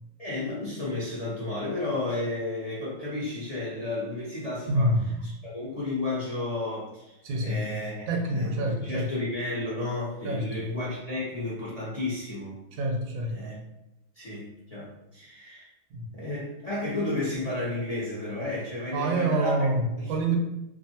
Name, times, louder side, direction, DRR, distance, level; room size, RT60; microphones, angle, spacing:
voice 1, 0.2-4.9 5.2-7.1 7.4-12.6 13.3-13.6 14.2-15.7 16.1-19.7 20.0-20.1, left 2 dB, 45° left, -7 dB, 0.5 m, -32 dB
voice 2, 4.7-5.2 7.2-7.7 8.1-9.1 10.2-10.6 12.7-13.4 15.9-16.1 18.9-20.4, right 1 dB, 90° right, 2 dB, 1.0 m, -27 dB
2.5 x 2.5 x 2.7 m, 0.90 s
omnidirectional pair, 1.4 m